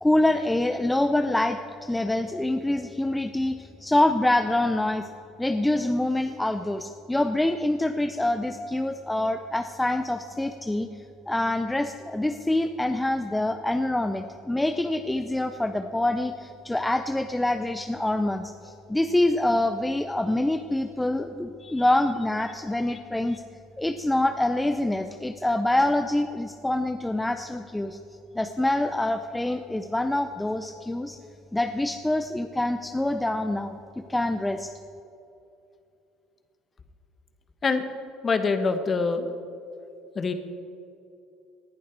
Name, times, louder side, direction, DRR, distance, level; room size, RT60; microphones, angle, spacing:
voice 1, 0.0-5.1 5.4-10.9 11.3-23.4 23.8-28.0 28.3-31.2 31.5-33.8 34.1-34.7, left 1 dB, 10° left, 7 dB, 0.6 m, -25 dB
voice 2, 38.2-39.3 40.1-40.3, left 4 dB, 30° left, 8 dB, 1.3 m, -25 dB
19.5 x 11.0 x 4.6 m, 2.8 s
supercardioid pair, 95°, 0 cm